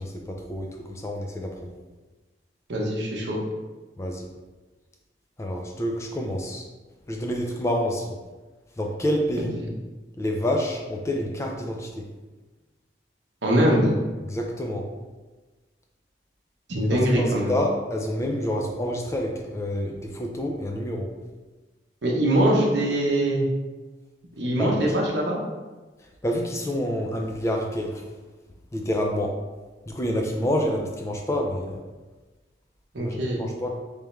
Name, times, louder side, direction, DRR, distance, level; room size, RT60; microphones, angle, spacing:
voice 1, 0.0-1.7 4.0-4.2 5.4-6.6 7.1-8.1 8.8-9.6 10.2-12.1 14.3-14.9 16.8-21.1 24.6-25.0 26.2-28.0 28.7-29.3 29.9-31.8 33.0-33.8, equal, 15° left, 1 dB, 0.3 m, -28 dB
voice 2, 2.7-3.4 13.4-13.9 16.7-17.5 22.0-23.5 24.4-25.4 32.9-33.4, right 1 dB, 75° right, -1 dB, 0.8 m, -22 dB
3.4 x 3.3 x 3.0 m, 1.2 s
head